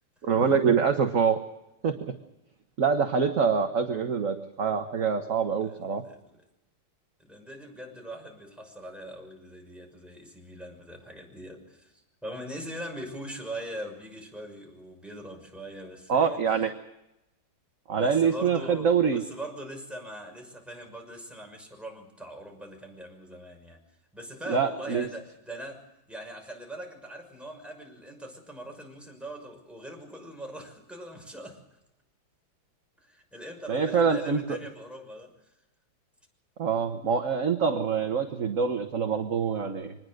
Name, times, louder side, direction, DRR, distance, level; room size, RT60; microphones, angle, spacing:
voice 1, 0.2-1.4 1.8-2.1 2.8-6.0 16.1-16.7 17.9-19.2 24.5-25.1 33.7-34.4 36.6-40.0, right 6 dB, 45° right, 6 dB, 1.5 m, -25 dB
voice 2, 5.6-6.4 7.2-16.4 17.9-23.8 24.1-31.6 33.0-35.3, right 1 dB, ahead, 1 dB, 6.2 m, -41 dB
25.0 x 20.5 x 6.5 m, 0.89 s
omnidirectional pair, 2.1 m